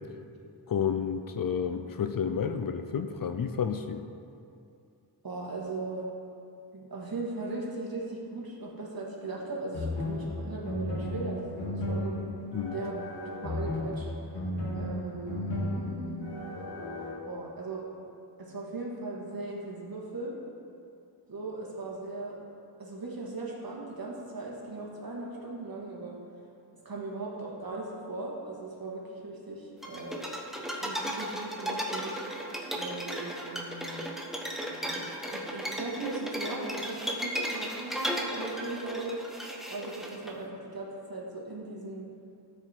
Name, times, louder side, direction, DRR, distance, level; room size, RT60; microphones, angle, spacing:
voice 1, 0.7-4.1 12.5-12.8, left 7 dB, 50° left, 8 dB, 0.5 m, -30 dB
voice 2, 5.2-6.1 6.7-12.2 12.7-13.1 13.4-14.1 14.7-16.3 17.2-17.9 18.4-20.4 21.3-22.4 22.8-26.2 26.9-30.3 30.8-34.1 34.7-42.1, right 2 dB, 50° right, -3 dB, 1.8 m, -38 dB
sound 1, 9.7-17.1, left 1 dB, 75° left, 1.9 m, -34 dB
sound 2, 29.8-40.3, equal, ahead, 0.9 m, -35 dB
13.5 x 5.0 x 4.4 m, 2.5 s
wide cardioid pair, 110°, 44 cm